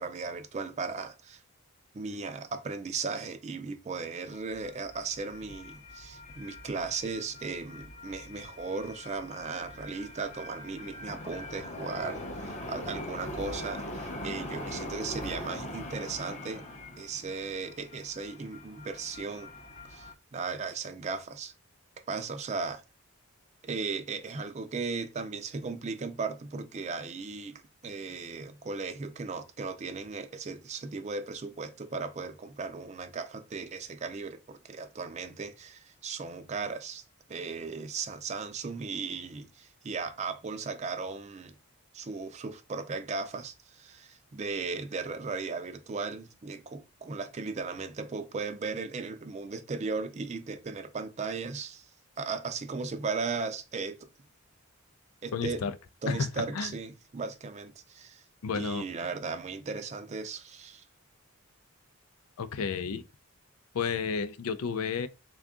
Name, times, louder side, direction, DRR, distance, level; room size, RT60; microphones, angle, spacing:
voice 1, 0.0-1.4 1.9-16.6 17.0-19.5 19.9-21.5 22.1-22.8 23.6-37.0 37.3-41.5 41.9-51.9 52.2-54.1 55.2-55.7 56.0-58.2 58.5-60.8, right 4 dB, 30° right, 0.4 m, -36 dB
sound 1, 4.3-20.1, left 1 dB, 30° left, 0.6 m, -42 dB
voice 2, 55.3-55.7 56.1-56.7 58.4-58.9 62.4-63.0 63.7-65.1, left 5 dB, 85° left, 0.4 m, -31 dB
3.6 x 2.4 x 3.5 m
head